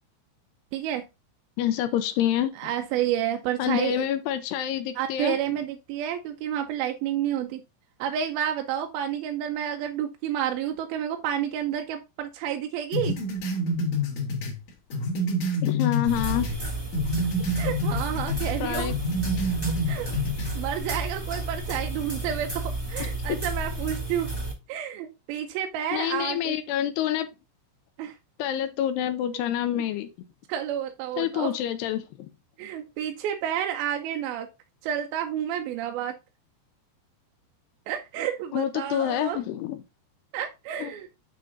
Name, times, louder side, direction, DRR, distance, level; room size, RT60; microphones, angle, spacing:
voice 1, 0.7-1.1 2.6-4.1 5.0-7.6 8.0-13.1 17.6-18.9 19.9-20.1 20.5-24.3 24.7-26.6 28.0-28.1 30.5-31.6 32.6-34.5 34.8-36.1 37.9-39.4 40.3-41.1, right 10 dB, 80° right, 2.2 m, -30 dB
voice 2, 1.6-2.5 3.6-5.4 15.6-16.5 18.6-18.9 23.0-23.4 25.9-27.3 28.4-30.1 31.2-32.3 38.5-39.8 40.8-40.9, left 11 dB, 80° left, 2.6 m, -27 dB
sound 1, 12.9-16.6 16.9-18.6 18.9-20.5, left 1 dB, 50° left, 2.5 m, -28 dB
sound 2, 16.1-24.5, right 2 dB, 25° right, 0.4 m, -32 dB
8.8 x 3.6 x 3.8 m
omnidirectional pair, 4.9 m